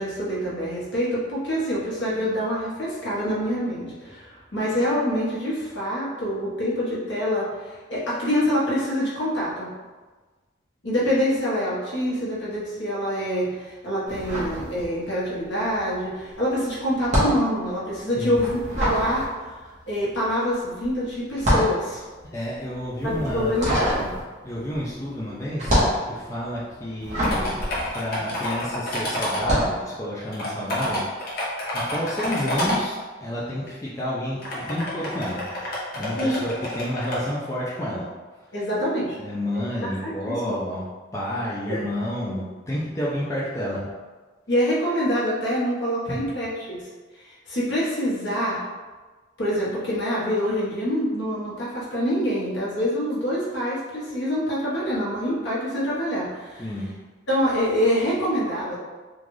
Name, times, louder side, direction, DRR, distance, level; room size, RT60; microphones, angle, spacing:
voice 1, 0.0-9.7 10.8-19.5 19.9-22.1 23.0-24.1 36.2-36.4 38.5-39.2 40.0-40.5 41.6-41.8 44.5-46.9 47.3-48.6 49.4-56.7 57.3-58.8, equal, 65° left, -7 dB, 1.1 m, -26 dB
sound 1, 14.1-15.3 15.6-28.8 29.3-29.8, equal, 35° right, 1.2 m, -26 dB
voice 2, 22.3-23.9 24.4-25.8 26.1-27.6 27.9-35.4 35.9-38.1 39.2-40.9 41.1-43.9 46.1-46.2 56.6-56.9, equal, 15° left, -7 dB, 0.4 m, -30 dB
sound 2, 27.2-29.4 30.2-32.8 33.7-33.8 34.4-37.2, left 1 dB, 50° left, 0.9 m, -28 dB
3.7 x 2.4 x 3.1 m, 1.3 s
head